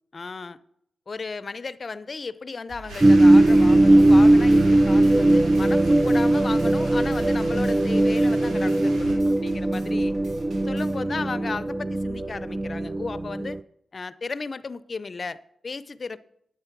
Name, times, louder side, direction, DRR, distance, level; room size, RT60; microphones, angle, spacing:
voice 1, 0.1-0.6 1.1-10.2 10.6-13.6 13.9-16.2, left 4 dB, 45° left, 0.5 m, -35 dB
sound 1, 2.7-11.0, right 2 dB, 75° right, 3.5 m, -46 dB
sound 2, 2.9-9.2, right 2 dB, 90° right, 5.8 m, -41 dB
sound 3, 3.0-13.6, right 1 dB, 25° right, 0.3 m, -19 dB
9.8 x 8.8 x 6.0 m
cardioid pair, 75°, 0 cm